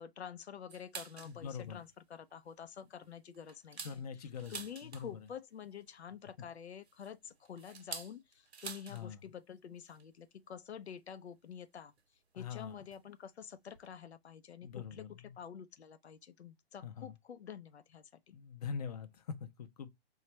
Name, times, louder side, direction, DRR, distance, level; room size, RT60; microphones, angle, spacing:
voice 1, 0.0-11.9 12.3-18.4, left 8 dB, 90° left, 0.7 m, -49 dB
sound 1, 0.7-1.4 1.8-1.9 2.3-2.5 3.0-5.3 6.5-9.1 9.3-9.4 9.7-10.0 11.0-11.1 12.0-12.1 12.9-13.1 13.4-13.5 13.7-13.9, right 5 dB, 85° right, 0.9 m, -48 dB
voice 2, 1.3-1.8 3.8-5.2 8.9-9.2 12.3-12.8 14.6-15.3 16.8-17.1 18.3-19.9, left 6 dB, 40° left, 0.6 m, -43 dB
4.4 x 2.4 x 3.0 m
hypercardioid pair, 155°, 32 cm